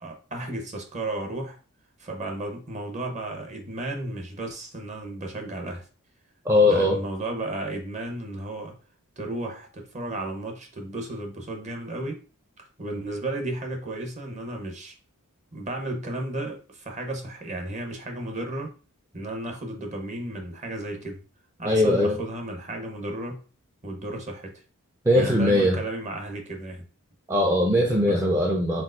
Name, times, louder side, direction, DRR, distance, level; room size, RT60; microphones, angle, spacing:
voice 1, 0.0-1.6 2.0-5.8 6.6-8.7 9.2-12.2 12.8-14.9 15.5-18.7 19.1-21.2 21.6-23.4 23.8-24.5 25.1-26.8 28.0-28.2, right 2 dB, 30° right, 3 dB, 0.9 m, -33 dB
voice 2, 6.5-7.0 21.6-22.2 25.1-25.8 27.3-28.8, left 1 dB, 10° right, -1 dB, 0.5 m, -20 dB
4.5 x 3.9 x 2.5 m, 0.37 s
head